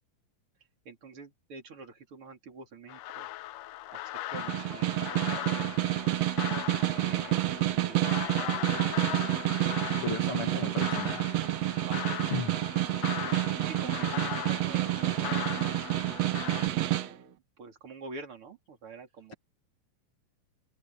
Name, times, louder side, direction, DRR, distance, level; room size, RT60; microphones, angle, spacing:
voice 1, 0.9-3.3 3.9-6.1 6.9-9.1 11.8-12.2 13.1-15.7 16.5-19.3, right 4 dB, 35° right, 3.9 m, -47 dB
sound 1, 2.9-16.7, left 15 dB, 75° left, 2.0 m, -39 dB
Snare drum, 4.3-17.1, right 15 dB, 80° right, 1.4 m, -29 dB
voice 2, 10.0-11.2 12.3-12.5, left 6 dB, 45° left, 2.3 m, -35 dB
open air
omnidirectional pair, 4.4 m